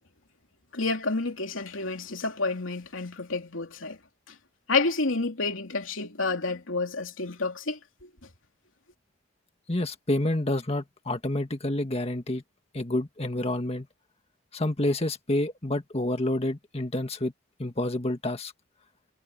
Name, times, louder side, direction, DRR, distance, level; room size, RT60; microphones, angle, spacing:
voice 1, 0.7-4.0 4.3-4.4 4.7-8.1, left 3 dB, 85° left, 2.9 m, -29 dB
voice 2, 9.7-12.4 12.7-13.9 14.5-17.3 17.6-18.5, left 1 dB, 30° left, 1.7 m, -28 dB
head